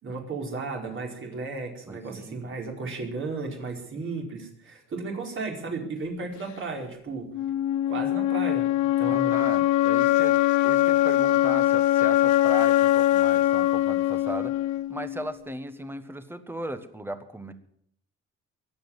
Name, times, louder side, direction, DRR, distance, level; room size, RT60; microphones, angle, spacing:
voice 1, 0.0-7.3 7.9-8.7 9.0-9.3, right 3 dB, 45° right, 1 dB, 4.7 m, -34 dB
voice 2, 1.9-2.5 9.1-14.6 14.9-17.5, right 1 dB, 10° right, 10 dB, 1.5 m, -37 dB
sound 1, 7.3-15.3, left 14 dB, 90° left, 0.8 m, -22 dB
22.0 x 8.9 x 7.2 m, 0.67 s
cardioid pair, 135°, 29 cm